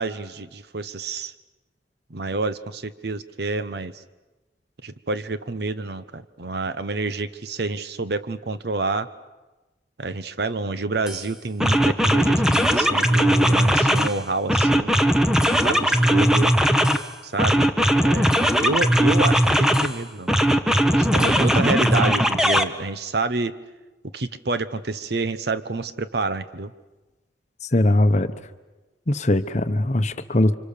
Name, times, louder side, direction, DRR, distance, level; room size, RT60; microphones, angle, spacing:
voice 1, 0.0-1.3 2.1-4.0 4.8-9.1 10.0-15.0 15.6-16.6 17.2-17.7 18.0-20.3 20.9-23.6 24.1-26.7, right 3 dB, 60° right, 12 dB, 0.9 m, -28 dB
sound 1, 11.1-11.2 11.6-14.1 14.5-17.0 17.4-19.9 20.3-22.6, equal, 5° right, 0.8 m, -19 dB
voice 2, 27.7-28.3 29.1-30.5, left 1 dB, 40° left, 10 dB, 0.9 m, -20 dB
30.0 x 25.5 x 6.7 m, 1.1 s
head